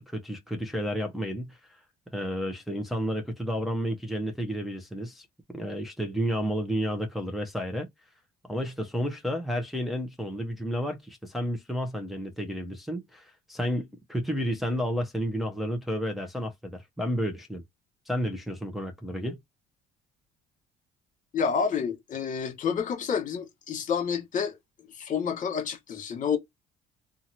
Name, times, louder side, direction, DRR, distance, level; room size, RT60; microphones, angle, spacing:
voice 1, 0.0-1.6 2.1-7.9 8.5-17.6 18.1-19.4, equal, ahead, 0.8 m, -31 dB
voice 2, 21.3-24.6 24.9-26.4, left 6 dB, 50° left, 1.4 m, -29 dB
2.8 x 2.4 x 2.7 m
cardioid pair, 110°, 17 cm